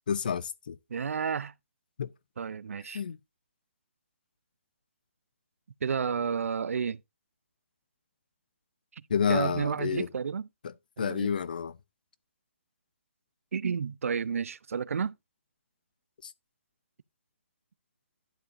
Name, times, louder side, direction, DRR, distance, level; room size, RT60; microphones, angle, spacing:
voice 1, 0.1-0.8 2.0-2.1 2.9-3.2 9.1-10.1 11.0-11.8 16.2-16.3, left 7 dB, 40° left, 0.4 m, -29 dB
voice 2, 0.9-1.5 2.4-3.0 5.8-7.0 8.9-9.0 9.3-10.5 11.0-11.3 13.5-15.1, right 6 dB, 75° right, 0.4 m, -31 dB
11.5 x 7.1 x 2.6 m
hypercardioid pair, 180°, 8 cm